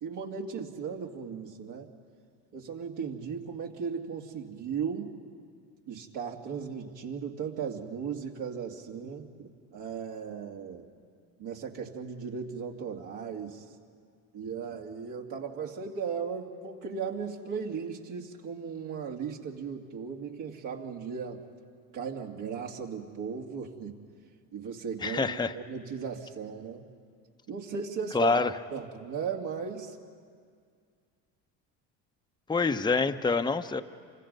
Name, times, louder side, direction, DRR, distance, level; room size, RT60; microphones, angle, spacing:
voice 1, 0.0-1.9 2.5-5.1 5.9-10.9 11.4-13.6 14.3-21.4 21.9-23.9 24.5-26.8 27.5-28.4 28.7-30.0, right 6 dB, 65° right, 1 dB, 2.7 m, -36 dB
voice 2, 25.0-25.5 28.1-28.5 32.5-33.8, left 4 dB, 10° left, 8 dB, 0.8 m, -26 dB
28.5 x 25.0 x 5.5 m, 2.1 s
hypercardioid pair, 70°, 46 cm